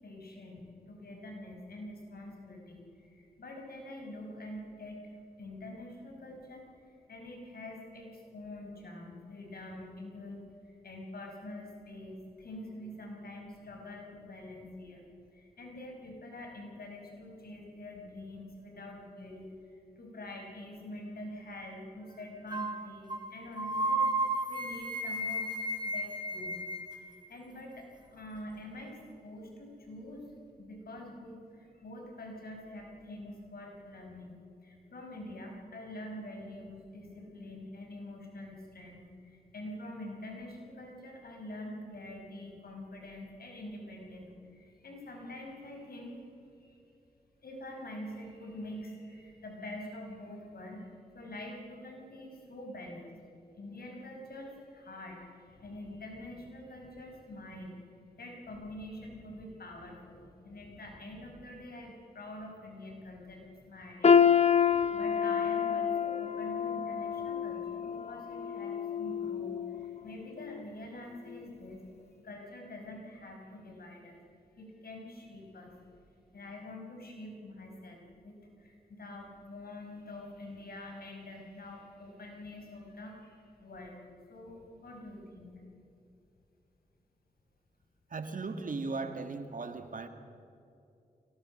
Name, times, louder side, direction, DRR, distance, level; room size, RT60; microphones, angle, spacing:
voice 1, 0.0-5.1 5.4-25.4 25.8-26.6 26.9-30.3 30.6-46.2 46.5-46.8 47.4-53.2 53.6-57.7 58.2-71.8 72.2-74.2 74.6-75.8 76.3-85.6, left 1 dB, 70° left, 1 dB, 5.4 m, -46 dB
sound 1, 22.5-22.8 23.1-23.3 23.6-26.9, right 1 dB, 25° right, 4.0 m, -33 dB
sound 2, 64.0-70.0 70.4-70.6 71.4-71.5, left 7 dB, 40° left, 0.6 m, -28 dB
voice 2, 88.1-90.1, right 3 dB, 55° right, 7 dB, 2.1 m, -37 dB
23.5 x 18.0 x 6.5 m, 2.6 s
cardioid pair, 45°, 16 cm